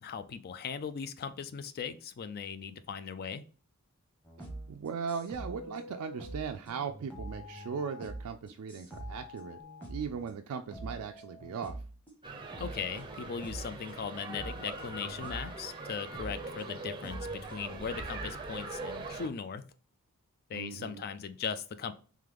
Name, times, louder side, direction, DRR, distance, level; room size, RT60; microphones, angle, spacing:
voice 1, 0.0-3.4 12.6-19.7 20.5-21.9, left 6 dB, 45° left, 12 dB, 0.3 m, -38 dB
sound 1, 4.2-10.4 10.7-12.2 12.5-13.8 14.3-15.6 16.1-18.3, right 1 dB, 10° left, 1.1 m, -45 dB
voice 2, 4.7-9.6 9.9-11.8 20.5-21.0, right 6 dB, 85° right, 5 dB, 0.4 m, -38 dB
sound 2, 12.2-19.3, right 3 dB, 20° right, 0.6 m, -42 dB
3.7 x 3.2 x 3.4 m, 0.39 s
head